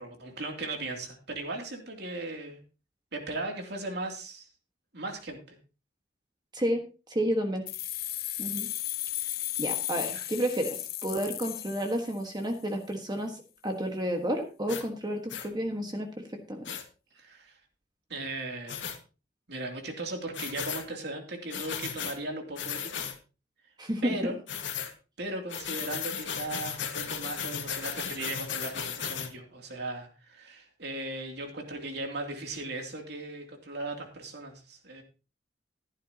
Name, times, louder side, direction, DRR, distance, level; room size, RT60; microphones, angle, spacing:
voice 1, 0.0-2.6 3.1-4.5 4.9-5.6 10.1-10.2 17.2-17.5 18.1-18.8 19.5-23.1 24.0-24.4 25.2-35.0, right 2 dB, 65° right, 3 dB, 2.9 m, -37 dB
voice 2, 6.5-7.6 8.4-8.7 9.6-16.7 23.8-24.3, equal, 25° right, 4 dB, 1.5 m, -31 dB
sound 1, 7.7-12.4, left 15 dB, 55° left, 0.9 m, -35 dB
sound 2, 14.7-14.8 15.3-15.5 16.6-16.8 18.7-19.0 20.3-20.8 21.5-22.2 22.6-23.2 24.5-24.9 25.5-29.3, left 8 dB, 80° left, 1.9 m, -35 dB
14.5 x 11.5 x 2.9 m, 0.32 s
head